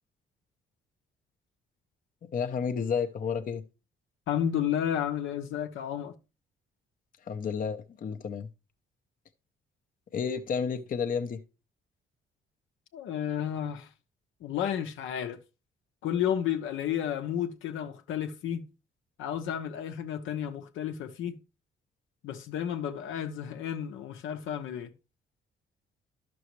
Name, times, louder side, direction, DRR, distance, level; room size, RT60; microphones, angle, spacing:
voice 1, 2.2-3.6 7.3-8.5 10.1-11.4, left 6 dB, 45° left, 0.7 m, -31 dB
voice 2, 4.3-6.1 12.9-13.9 14.4-15.4 16.0-18.7 19.2-21.4 22.2-24.9, left 9 dB, 80° left, 0.8 m, -32 dB
11.5 x 6.2 x 3.1 m
cardioid pair, 90°, 20 cm